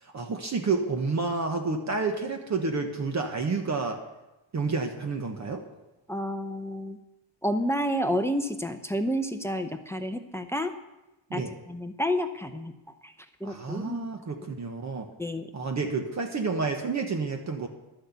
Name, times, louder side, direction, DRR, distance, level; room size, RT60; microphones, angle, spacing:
voice 1, 0.0-4.0 4.5-5.6 11.3-11.5 13.4-15.1 15.5-17.7, right 4 dB, 35° right, 4 dB, 1.1 m, -29 dB
voice 2, 6.1-7.0 7.4-10.7 11.3-13.1 13.4-14.0 15.2-15.5, equal, 5° left, 8 dB, 0.6 m, -30 dB
12.0 x 6.4 x 8.1 m, 1.0 s
cardioid pair, 125°, 47 cm